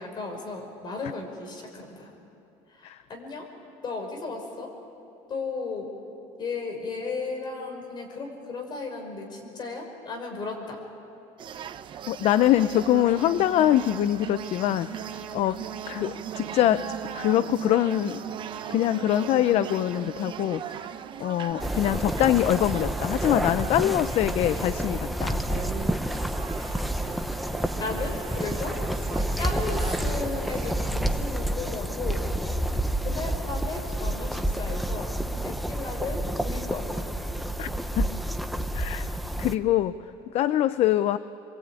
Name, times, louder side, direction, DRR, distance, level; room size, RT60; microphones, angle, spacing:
voice 1, 0.0-2.1 2.8-3.5 3.8-4.7 5.3-5.9 6.4-10.8 27.8-28.8 29.3-32.3 33.0-35.2 35.4-37.1, left 4 dB, 35° left, 3 dB, 5.4 m, -35 dB
sound 1, 11.4-30.7, right 9 dB, 40° right, 0.8 m, -41 dB
Alarm, 11.6-21.5, right 9 dB, 60° right, 2.9 m, -39 dB
voice 2, 12.1-14.9 15.3-15.6 15.9-16.8 17.1-18.2 18.7-20.6 21.2-25.4 37.6-37.7 38.0-38.1 38.7-39.1 39.4-40.0 40.3-41.2, left 12 dB, 55° left, 13 dB, 0.6 m, -23 dB
sound 2, 21.6-39.6, right 1 dB, ahead, 0.9 m, -29 dB
27.0 x 24.0 x 9.0 m, 2.6 s
cardioid pair, 140°, 13 cm